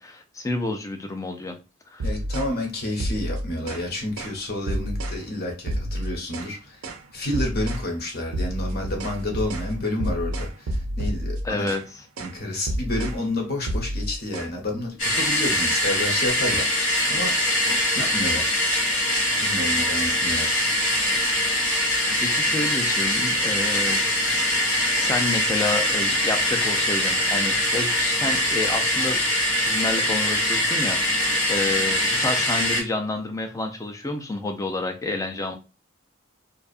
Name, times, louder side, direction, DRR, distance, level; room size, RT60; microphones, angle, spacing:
voice 1, 0.0-1.6 1.9-2.0 11.4-11.8 22.2-24.0 25.0-29.2 29.6-35.6, left 2 dB, 15° left, 0.4 m, -29 dB
voice 2, 2.0-6.8 7.1-11.8 12.2-17.4 17.9-18.7 19.4-20.6, left 1 dB, 50° left, 0.8 m, -30 dB
sound 1, 2.0-2.6 3.0-3.9 4.2-4.4 4.7-5.2 5.7-6.5 6.8-7.1 7.3-7.9 8.3-11.9 12.2-12.4 12.7-13.2 13.7-14.5, right 1 dB, 80° right, 0.5 m, -29 dB
sound 2, 15.0-32.8, left 1 dB, 80° left, 1.2 m, -23 dB
2.6 x 2.3 x 2.4 m
head